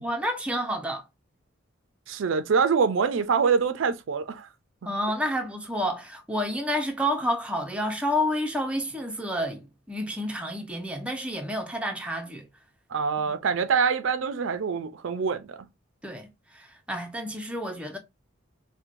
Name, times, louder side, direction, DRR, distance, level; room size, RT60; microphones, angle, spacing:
voice 1, 0.0-1.0 4.8-12.5 16.0-18.0, equal, 5° right, 0.5 m, -29 dB
voice 2, 2.1-4.5 12.9-15.6, right 5 dB, 75° right, 0.4 m, -25 dB
4.4 x 2.1 x 2.5 m
head